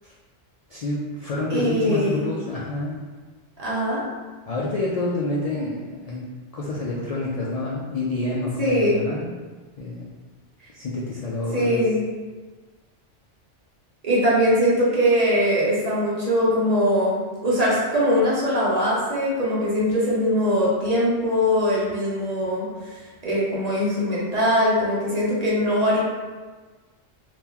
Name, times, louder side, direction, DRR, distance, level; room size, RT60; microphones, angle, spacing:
voice 1, 0.7-3.0 4.5-6.2 6.5-9.3 9.8-10.1 10.7-11.8, left 2 dB, 75° left, -5 dB, 0.3 m, -28 dB
voice 2, 1.5-2.3 3.6-4.0 8.6-9.0 11.5-12.0 14.0-22.9 23.2-26.0, equal, 40° right, -7 dB, 0.8 m, -21 dB
2.8 x 2.4 x 3.7 m, 1.4 s
omnidirectional pair, 1.2 m